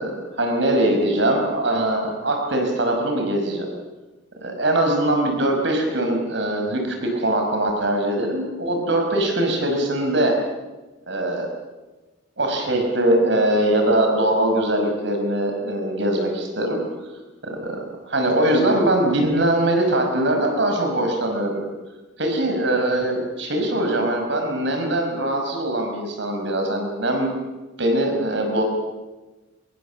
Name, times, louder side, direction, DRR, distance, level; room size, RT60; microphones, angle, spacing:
voice 1, 0.0-3.7 4.4-10.3 11.1-11.5 12.4-16.8 17.4-21.6 22.2-27.3 27.8-28.6, right 1 dB, 65° right, 3 dB, 5.4 m, -22 dB
25.0 x 22.5 x 7.3 m, 1.2 s
head